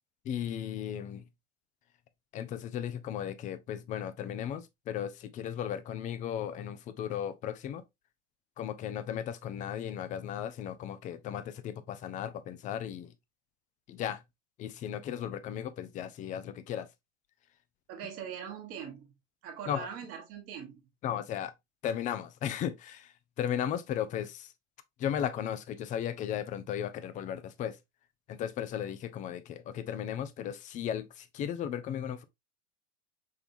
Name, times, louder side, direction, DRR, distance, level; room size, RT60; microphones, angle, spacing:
voice 1, 0.2-1.3 2.3-7.8 8.6-13.1 13.9-14.2 14.6-16.9 19.7-19.9 21.0-21.5 21.8-24.5 25.0-27.8 28.3-32.2, left 9 dB, 20° left, 0.4 m, -36 dB
voice 2, 17.9-19.1 19.4-20.9, right 8 dB, 40° right, 1.2 m, -42 dB
5.5 x 3.4 x 2.5 m
figure-of-eight pair, 80°, 38 cm